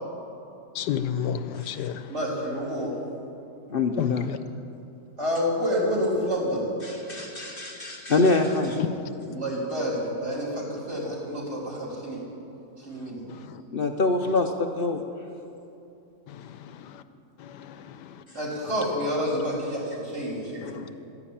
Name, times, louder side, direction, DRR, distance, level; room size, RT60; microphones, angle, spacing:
voice 1, 0.7-2.0 4.0-4.4 13.3-13.6 16.3-16.6 17.4-18.1 20.6-20.8, left 9 dB, 80° left, 11 dB, 1.3 m, -31 dB
voice 2, 2.1-3.0 5.2-6.7 9.3-12.2 12.9-13.2 18.3-20.8, equal, 40° right, -5 dB, 3.8 m, -28 dB
voice 3, 3.7-4.3 6.8-8.9 13.7-15.0, left 3 dB, 60° left, 5 dB, 0.6 m, -25 dB
13.0 x 11.0 x 8.7 m, 2.9 s
omnidirectional pair, 1.9 m